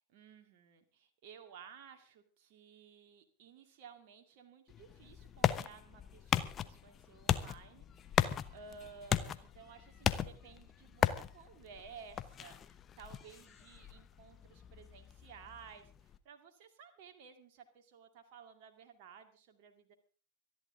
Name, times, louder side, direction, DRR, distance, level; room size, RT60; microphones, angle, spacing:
voice 1, 0.1-19.9, right 6 dB, 45° right, 5 dB, 2.3 m, -56 dB
sound 1, 4.7-16.2, left 9 dB, 25° left, 1.0 m, -37 dB
25.0 x 11.0 x 3.7 m, 0.38 s
figure-of-eight pair, 90°, 0 cm